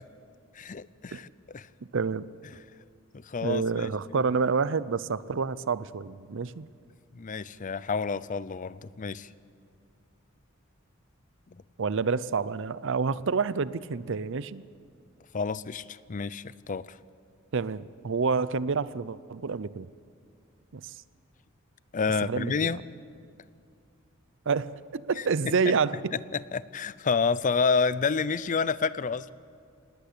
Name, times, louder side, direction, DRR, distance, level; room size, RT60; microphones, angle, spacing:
voice 1, 0.5-1.7 3.1-3.9 4.2-4.3 7.1-9.3 11.5-11.6 15.3-17.0 21.9-22.8 25.2-25.7 26.3-29.3, left 5 dB, 40° left, 18 dB, 0.5 m, -29 dB
voice 2, 1.9-2.3 3.4-6.7 11.8-14.6 17.5-19.9 20.7-20.9 22.3-22.7 24.5-26.1, right 5 dB, 65° right, 18 dB, 0.6 m, -28 dB
19.0 x 18.5 x 8.5 m, 2.3 s
head